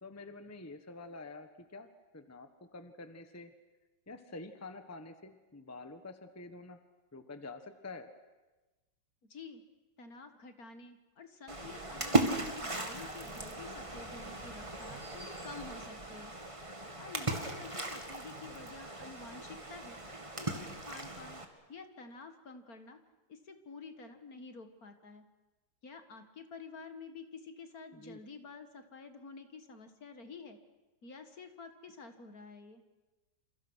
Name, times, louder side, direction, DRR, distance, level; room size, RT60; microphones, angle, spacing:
voice 1, 0.0-1.9 2.1-3.5 4.1-6.8 7.1-8.1 27.9-28.2, left 3 dB, 10° left, 9 dB, 1.2 m, -47 dB
voice 2, 9.3-9.6 10.0-16.3 17.0-20.0 20.4-21.4 21.7-23.0 23.3-25.2 25.8-30.6 31.0-32.8, left 4 dB, 50° left, 8 dB, 2.1 m, -50 dB
Splash splatter, 11.5-21.4, right 2 dB, 15° right, 2.1 m, -37 dB
28.0 x 28.0 x 6.4 m, 1.1 s
omnidirectional pair, 2.0 m